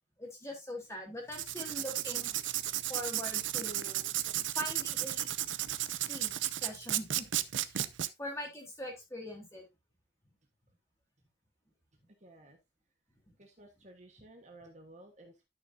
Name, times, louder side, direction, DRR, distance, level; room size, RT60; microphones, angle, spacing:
voice 1, 0.2-2.3 2.9-4.1 4.6-5.3 6.1-6.4 6.6-7.3 7.5-7.7 8.2-9.6, equal, 15° left, -1 dB, 3.7 m, -42 dB
Writing, 1.3-8.1, right 13 dB, 90° right, 0.6 m, -34 dB
voice 2, 12.2-12.6 13.4-15.5, right 1 dB, 40° right, 3 dB, 1.4 m, -55 dB
12.0 x 6.6 x 2.7 m, 0.22 s
head